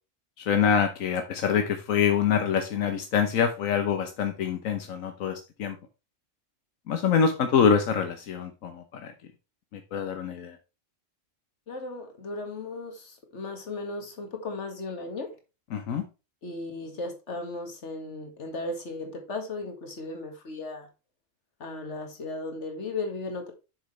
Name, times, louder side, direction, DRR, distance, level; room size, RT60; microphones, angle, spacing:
voice 1, 0.4-5.8 6.9-9.1 9.7-10.6 15.7-16.0, left 7 dB, 85° left, 1.3 m, -25 dB
voice 2, 11.7-15.4 16.4-20.9 21.6-23.5, left 3 dB, 60° left, 2.1 m, -36 dB
7.8 x 6.7 x 3.2 m
omnidirectional pair, 1.3 m